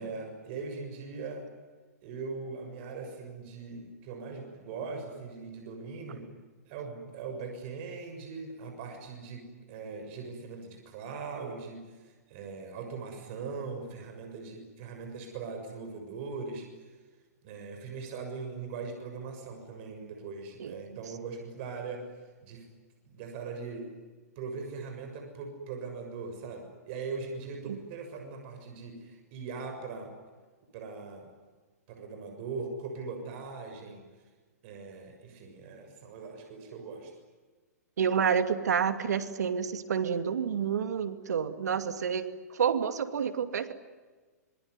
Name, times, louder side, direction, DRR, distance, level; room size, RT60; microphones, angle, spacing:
voice 1, 0.0-1.5 2.0-6.3 6.7-16.7 17.4-22.1 22.4-22.6 23.0-23.9 24.3-30.1 30.7-31.3 31.9-34.0 34.6-37.1, right 4 dB, 45° right, 4 dB, 6.8 m, -40 dB
voice 2, 20.6-20.9 27.7-27.8 38.0-43.7, right 7 dB, 80° right, 10 dB, 2.5 m, -29 dB
26.0 x 23.5 x 9.8 m, 1.4 s
hypercardioid pair, 130°, 9 cm